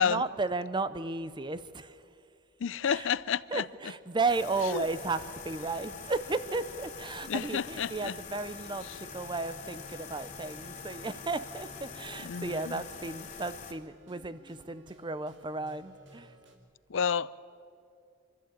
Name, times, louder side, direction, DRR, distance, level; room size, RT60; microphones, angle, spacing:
voice 1, 0.0-2.0 2.8-3.1 3.5-16.3, right 3 dB, 25° right, 0.6 m, -34 dB
voice 2, 2.6-3.7 4.7-4.8 7.3-8.2 12.2-12.8 16.9-17.4, left 7 dB, 75° left, 0.5 m, -30 dB
sound 1, 3.6-16.6, equal, 65° right, 2.5 m, -57 dB
sound 2, 4.3-13.7, left 6 dB, 40° left, 1.5 m, -45 dB
24.5 x 13.5 x 8.6 m
head